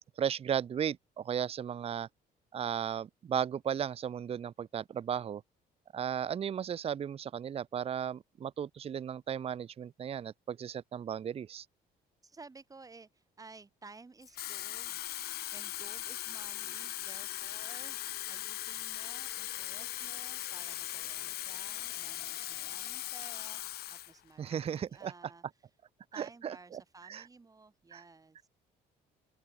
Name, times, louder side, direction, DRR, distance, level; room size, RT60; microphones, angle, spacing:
voice 1, 0.2-2.1 2.5-5.4 5.9-11.7 24.4-25.1 26.1-27.2 27.9-28.0, right 8 dB, 35° right, 0.7 m, -35 dB
voice 2, 12.2-25.7 26.1-28.5, right 3 dB, 20° right, 4.7 m, -55 dB
Water tap faucet / Fill (with liquid), 14.2-24.1 24.5-24.8, left 14 dB, 70° left, 1.5 m, -39 dB
open air
cardioid pair, 110°, 17 cm